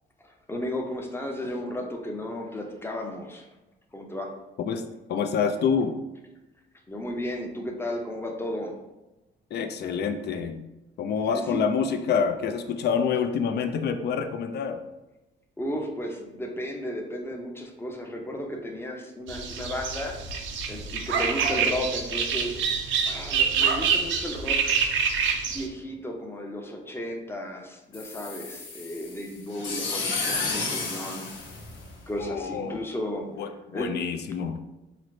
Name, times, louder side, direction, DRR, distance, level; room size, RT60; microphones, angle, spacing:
voice 1, 0.2-3.5 3.9-4.3 6.9-8.7 11.3-11.6 15.6-20.2 20.7-22.6 23.0-24.8 25.5-31.3 32.1-33.5 33.7-33.9, left 1 dB, 10° left, 2 dB, 0.6 m, -34 dB
voice 2, 5.1-5.9 9.5-10.6 11.0-14.8 32.2-32.8 33.4-34.6, left 6 dB, 55° left, 7 dB, 0.4 m, -27 dB
sound 1, 19.3-25.7, right 6 dB, 70° right, 0.5 m, -26 dB
sound 2, 27.9-32.3, left 4 dB, 75° left, 0.8 m, -32 dB
3.8 x 2.1 x 3.0 m, 1.0 s
cardioid pair, 90°, 20 cm